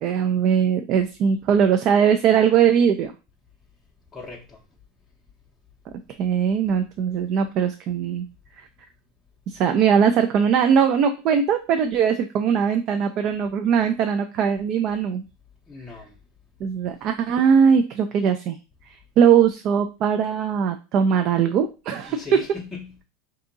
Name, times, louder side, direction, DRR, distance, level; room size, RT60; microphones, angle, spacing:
voice 1, 0.0-3.1 6.2-8.3 9.5-15.2 16.6-18.6 19.2-22.4, right 7 dB, 45° right, 0.4 m, -20 dB
voice 2, 4.1-4.6 15.7-16.2 22.0-23.0, left 4 dB, 10° left, 0.6 m, -39 dB
3.5 x 2.7 x 3.9 m
supercardioid pair, 140°, 0 cm